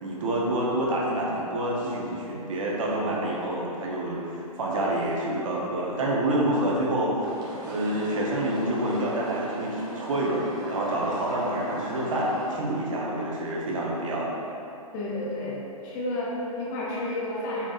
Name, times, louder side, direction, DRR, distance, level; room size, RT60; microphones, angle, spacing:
voice 1, 0.0-7.3 7.7-14.3, right 1 dB, 60° right, -4 dB, 0.9 m, -27 dB
sound 1, 7.2-12.5, right 1 dB, 20° right, 0.6 m, -38 dB
voice 2, 14.9-17.7, left 1 dB, 30° left, -5 dB, 0.8 m, -31 dB
4.0 x 3.4 x 2.4 m, 2.8 s
figure-of-eight pair, 125°, 19 cm